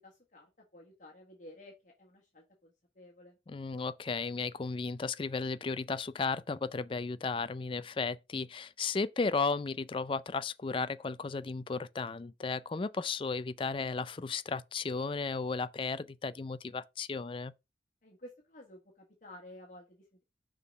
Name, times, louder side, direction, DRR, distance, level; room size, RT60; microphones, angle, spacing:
voice 1, 0.0-3.4 18.0-20.1, left 1 dB, 45° left, 1.5 m, -53 dB
voice 2, 3.5-17.5, left 4 dB, 30° left, 0.4 m, -34 dB
6.0 x 3.7 x 5.4 m
head